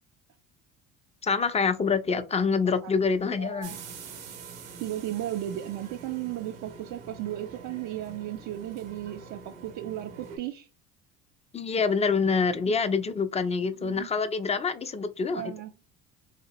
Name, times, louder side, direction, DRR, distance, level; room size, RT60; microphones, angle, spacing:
voice 1, 1.2-3.8 11.5-15.5, left 5 dB, 20° left, 0.4 m, -26 dB
voice 2, 3.2-3.8 4.8-10.7 13.8-14.1 15.3-15.7, right 13 dB, 60° right, 0.4 m, -35 dB
sound 1, 3.6-10.4, right 5 dB, 85° right, 1.0 m, -45 dB
2.8 x 2.8 x 2.9 m
supercardioid pair, 75°, 34 cm